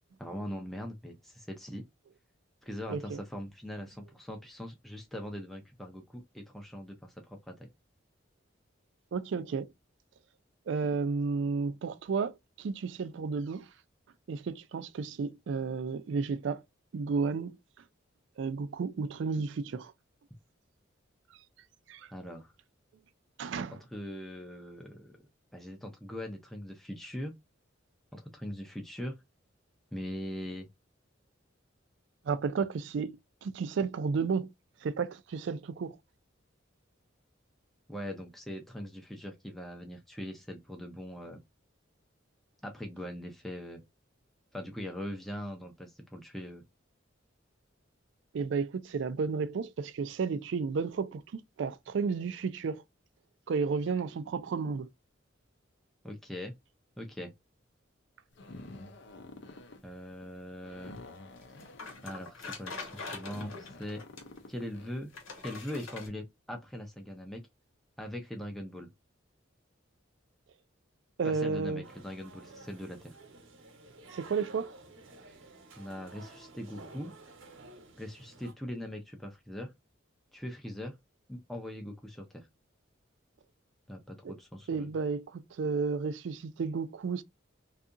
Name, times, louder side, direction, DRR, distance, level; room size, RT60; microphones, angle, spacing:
voice 1, 0.2-1.8 2.6-7.5 22.1-22.5 23.9-25.2 25.5-27.3 28.1-29.2 29.9-30.7 37.9-41.4 42.6-43.8 44.5-46.6 56.0-56.5 57.0-57.3 59.8-60.9 62.0-64.1 64.5-65.1 65.4-67.4 68.0-68.9 71.2-73.2 75.8-77.1 78.0-79.7 80.3-81.0 81.3-82.5 83.9-84.9, equal, ahead, 0.4 m, -41 dB
voice 2, 9.1-9.7 10.7-13.7 14.3-16.6 16.9-17.6 18.4-19.9 21.9-22.1 23.4-23.7 32.3-33.2 33.4-34.5 34.8-36.0 48.3-52.8 53.5-54.9 71.2-71.8 74.1-74.7 84.2-84.3 84.7-87.2, right 5 dB, 65° right, 0.3 m, -32 dB
sound 1, 58.3-65.3, left 2 dB, 60° left, 0.5 m, -49 dB
sound 2, 61.4-64.4 65.1-66.1, left 4 dB, 90° left, 1.0 m, -43 dB
sound 3, 71.8-78.5, right 3 dB, 85° right, 1.0 m, -52 dB
2.7 x 2.4 x 2.4 m
head